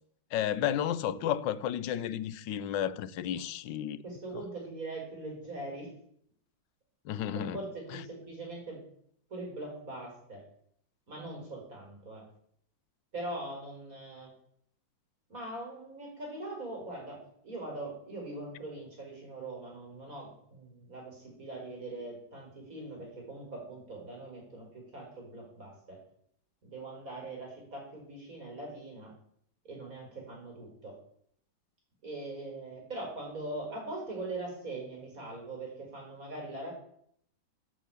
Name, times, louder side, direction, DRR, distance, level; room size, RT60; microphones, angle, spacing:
voice 1, 0.3-4.0 4.3-4.4 7.0-7.6 7.9-8.0, left 10 dB, 70° left, 1.3 m, -32 dB
voice 2, 4.0-5.9 7.3-8.8 9.3-10.4 11.1-12.2 13.1-14.3 15.3-26.0 26.6-29.1 29.6-31.0 32.0-36.7, right 2 dB, 45° right, 5.0 m, -41 dB
11.5 x 7.3 x 8.5 m
omnidirectional pair, 2.1 m